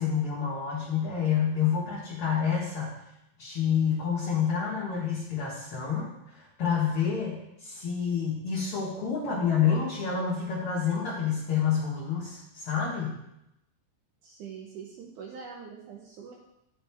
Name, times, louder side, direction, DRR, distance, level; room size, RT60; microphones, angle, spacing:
voice 1, 0.0-3.0 3.4-13.2, left 7 dB, 50° left, -7 dB, 1.9 m, -28 dB
voice 2, 14.2-16.3, right 6 dB, 75° right, -2 dB, 2.2 m, -43 dB
9.9 x 5.7 x 3.4 m, 0.85 s
omnidirectional pair, 3.8 m